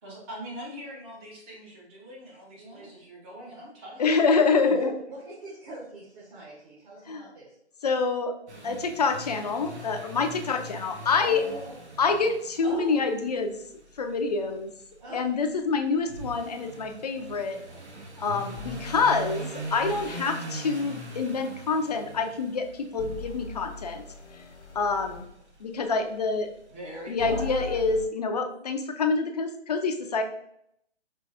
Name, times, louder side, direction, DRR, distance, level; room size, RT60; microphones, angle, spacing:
voice 1, 0.0-4.2 12.6-13.0 26.7-27.9, equal, 10° right, -3 dB, 0.6 m, -41 dB
voice 2, 2.6-2.9 4.5-7.5 11.1-11.8 15.0-15.3 19.1-19.2 26.3-26.4 28.5-28.6, right 1 dB, 35° right, -8 dB, 1.4 m, -43 dB
voice 3, 4.0-4.9 7.1-7.3 7.8-8.3 8.6-11.4 12.0-13.6 14.0-14.7 15.1-17.6 18.2-24.0 24.3-24.4 24.7-25.2 25.6-26.5 27.1-30.2, left 4 dB, 40° left, 5 dB, 0.5 m, -26 dB
sound 1, 8.5-27.3, right 1 dB, 80° right, 1.2 m, -42 dB
sound 2, 18.6-20.2 23.0-25.3 27.2-28.1, left 4 dB, 85° left, 0.9 m, -41 dB
5.4 x 3.0 x 2.7 m, 0.73 s
hypercardioid pair, 150°, 33 cm